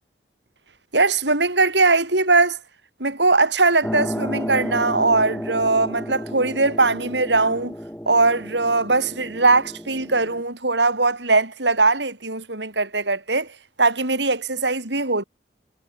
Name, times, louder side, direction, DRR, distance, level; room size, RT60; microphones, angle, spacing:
voice 1, 0.9-2.6 3.0-7.7 8.1-13.5 13.8-15.2, right 3 dB, 85° right, 6.9 m, -20 dB
sound 1, 3.8-10.4, equal, 10° left, 5.9 m, -32 dB
head